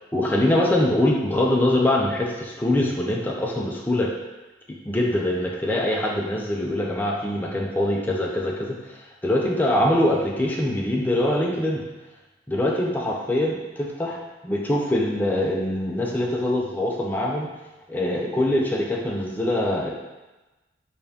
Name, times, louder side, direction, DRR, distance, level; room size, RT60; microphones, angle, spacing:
voice 1, 0.1-4.1 4.8-8.8 9.2-11.8 12.5-14.2 14.5-17.5 17.9-19.9, left 1 dB, 10° left, -2 dB, 0.3 m, -23 dB
4.1 x 2.3 x 3.4 m, 1.1 s
head